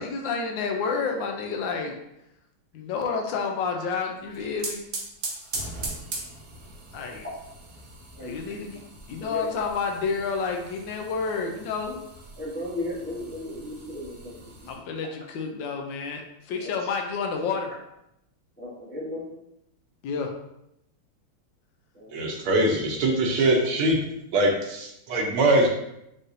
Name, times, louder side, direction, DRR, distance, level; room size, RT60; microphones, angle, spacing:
voice 1, 0.0-2.0 2.7-4.8 6.9-7.3 8.2-8.8 9.1-12.0 14.7-17.7 20.0-20.3, left 5 dB, 75° left, 3 dB, 1.2 m, -29 dB
sound 1, 4.1-14.7, right 3 dB, 60° right, 1.3 m, -40 dB
voice 2, 12.4-14.7 16.6-16.7 18.6-19.2 21.9-22.3 25.1-25.2, left 1 dB, 15° left, -7 dB, 0.4 m, -35 dB
voice 3, 22.1-24.0 24.3-25.7, right 1 dB, 75° right, 1 dB, 1.7 m, -22 dB
5.4 x 3.4 x 2.6 m, 0.82 s
omnidirectional pair, 2.4 m